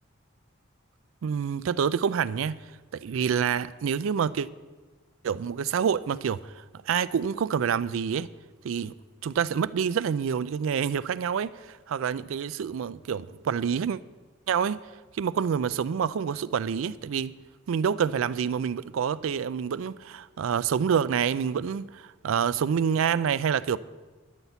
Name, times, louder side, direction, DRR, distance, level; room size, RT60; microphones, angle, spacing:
voice 1, 1.2-2.6 2.9-4.5 5.2-8.3 8.6-8.9 9.2-14.0 14.5-14.8 15.1-17.3 17.7-23.8, right 7 dB, 80° right, 0.4 m, -27 dB
10.5 x 5.7 x 8.0 m
head